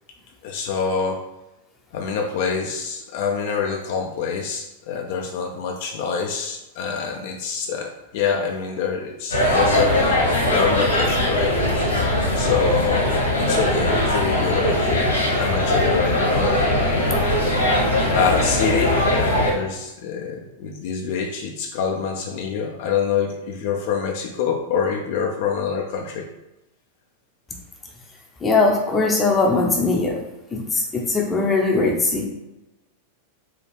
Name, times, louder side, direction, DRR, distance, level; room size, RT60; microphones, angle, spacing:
voice 1, 0.4-1.2 1.9-11.6 12.3-13.1 13.4-17.1 18.0-26.3, left 6 dB, 60° left, 2 dB, 0.4 m, -26 dB
sound 1, 9.3-19.5, left 1 dB, 85° left, 1.4 m, -20 dB
voice 2, 28.4-30.2 30.5-32.3, left 3 dB, 20° left, 0 dB, 0.6 m, -20 dB
4.2 x 2.3 x 3.2 m, 0.99 s
figure-of-eight pair, 95°, 0 cm